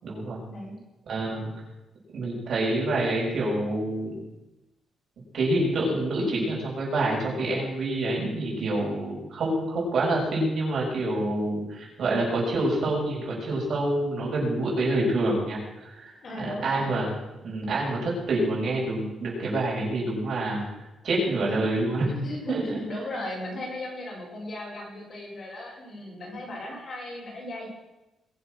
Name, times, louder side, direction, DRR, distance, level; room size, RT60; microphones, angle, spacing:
voice 1, 0.0-0.4 1.1-1.5 2.1-4.2 5.3-17.1 17.4-20.6 21.0-22.1 22.5-22.8, right 2 dB, 50° right, -5 dB, 6.7 m, -27 dB
voice 2, 16.2-16.9 22.2-27.7, left 1 dB, 40° left, -3 dB, 5.2 m, -37 dB
22.0 x 7.6 x 6.3 m, 1.0 s
cardioid pair, 160°, 0 cm